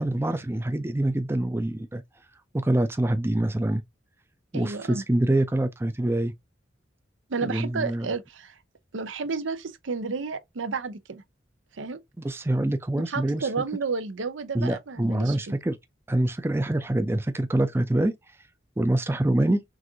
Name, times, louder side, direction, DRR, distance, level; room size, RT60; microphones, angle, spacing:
voice 1, 0.0-2.0 2.5-3.8 4.5-6.3 7.4-8.1 12.2-13.5 14.5-15.8 16.1-18.1 18.8-19.6, right 1 dB, 10° right, 0.4 m, -25 dB
voice 2, 4.5-5.0 7.3-8.6 8.9-11.2 11.7-12.0 13.1-15.6, right 4 dB, 80° right, 0.7 m, -31 dB
6.1 x 2.5 x 2.8 m
head